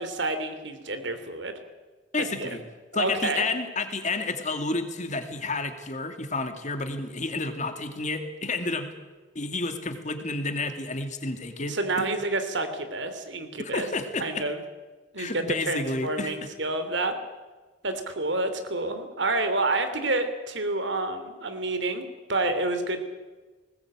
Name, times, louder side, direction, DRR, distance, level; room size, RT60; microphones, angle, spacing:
voice 1, 0.0-1.5 2.4-2.5 2.9-3.4 11.7-13.9 14.2-14.6 15.1-17.2 17.8-23.0, right 2 dB, 65° right, 9 dB, 3.0 m, -29 dB
voice 2, 2.1-2.6 2.9-8.9 9.3-12.1 13.6-14.4 15.2-16.3, left 3 dB, 40° left, 7 dB, 2.4 m, -30 dB
20.0 x 19.5 x 8.9 m, 1.3 s
head